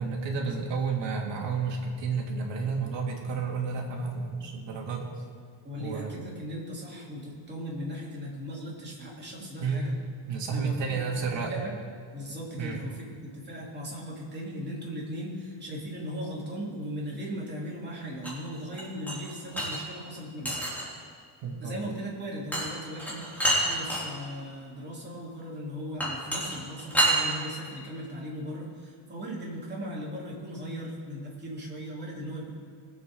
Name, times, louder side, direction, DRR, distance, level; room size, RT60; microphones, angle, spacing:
voice 1, 0.0-5.1 5.8-6.1 9.6-9.9 10.3-11.6 12.6-12.8 21.4-21.7, right 5 dB, 65° right, -1 dB, 2.5 m, -31 dB
voice 2, 5.6-9.9 10.5-11.8 12.1-13.0 13.3-20.6 21.6-32.5, equal, 20° right, -5 dB, 3.3 m, -38 dB
sound 1, 18.2-19.8 20.5-21.0 22.5-22.7 23.0-24.0 26.0-27.2, right 1 dB, 5° left, 3.2 m, -27 dB
21.0 x 8.1 x 3.9 m, 2.2 s
cardioid pair, 140°, 47 cm